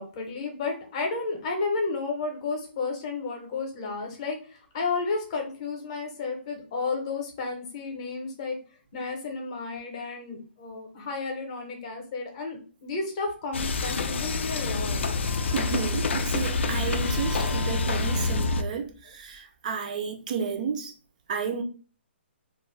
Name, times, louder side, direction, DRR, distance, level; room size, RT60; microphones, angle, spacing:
voice 1, 0.0-8.6 8.9-15.0, left 4 dB, 30° left, 0.7 m, -32 dB
sound 1, 13.5-18.6, left 3 dB, 70° left, 0.4 m, -27 dB
voice 2, 15.5-20.9 21.3-21.6, right 6 dB, 40° right, 0.4 m, -32 dB
2.4 x 2.1 x 3.1 m
hypercardioid pair, 160°, 6 cm